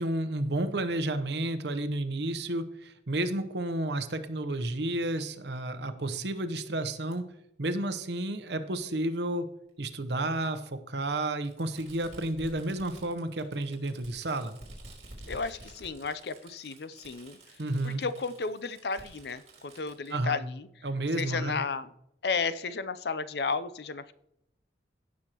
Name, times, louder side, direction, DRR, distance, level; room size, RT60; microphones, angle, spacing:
voice 1, 0.0-7.3 7.6-9.5 9.8-14.6 17.6-18.0 20.1-20.4 20.8-21.6, right 1 dB, 70° right, 9 dB, 0.9 m, -31 dB
Fireworks, 7.1-7.2 8.3-8.4 9.7-9.8 11.4-20.2, right 2 dB, 40° right, 3.6 m, -50 dB
voice 2, 15.2-17.4 17.8-20.7 21.1-21.9 22.2-24.1, left 4 dB, 65° left, 14 dB, 0.6 m, -33 dB
16.5 x 6.4 x 3.0 m, 0.79 s
head